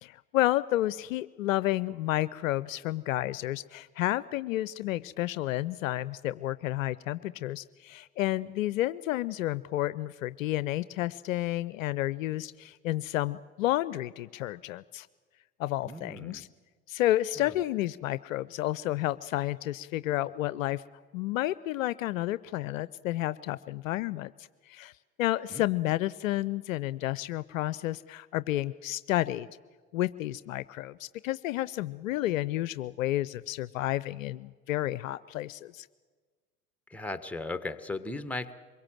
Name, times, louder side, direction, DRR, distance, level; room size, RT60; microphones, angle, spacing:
voice 1, 0.0-15.1 15.6-16.5 16.9-20.8 21.1-24.3 24.7-24.9 25.2-29.5 29.9-35.9, left 15 dB, 60° left, 17 dB, 0.6 m, -31 dB
voice 2, 15.8-16.4 17.4-17.6 25.5-25.6 36.9-38.5, left 2 dB, 5° left, 11 dB, 1.3 m, -37 dB
24.5 x 22.5 x 7.5 m, 1.5 s
figure-of-eight pair, 75°, 46 cm